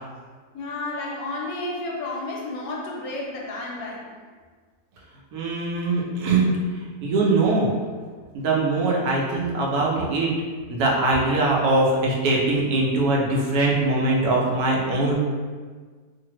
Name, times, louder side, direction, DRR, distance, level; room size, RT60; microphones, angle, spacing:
voice 1, 0.5-4.1, left 2 dB, 75° left, -2 dB, 1.0 m, -31 dB
voice 2, 5.3-6.5 6.7-7.7 8.3-10.3 10.7-15.1, right 2 dB, 75° right, -3 dB, 1.1 m, -22 dB
2.6 x 2.4 x 2.8 m, 1.5 s
omnidirectional pair, 1.7 m